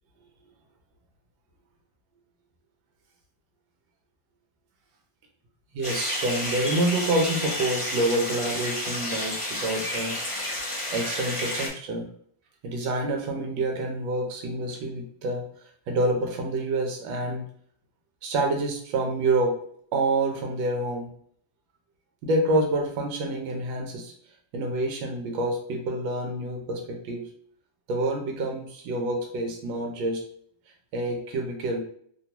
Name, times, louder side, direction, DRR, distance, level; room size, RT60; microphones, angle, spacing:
voice 1, 5.7-10.2 10.9-12.1 12.6-15.4 15.9-17.4 18.2-19.6 19.9-21.1 22.2-24.1 24.5-27.3 27.9-30.2 30.9-31.8, right 2 dB, 80° right, 2 dB, 1.4 m, -27 dB
sound 1, 5.8-11.7, left 1 dB, 30° left, 0.5 m, -31 dB
3.3 x 2.3 x 2.9 m, 0.62 s
omnidirectional pair, 2.1 m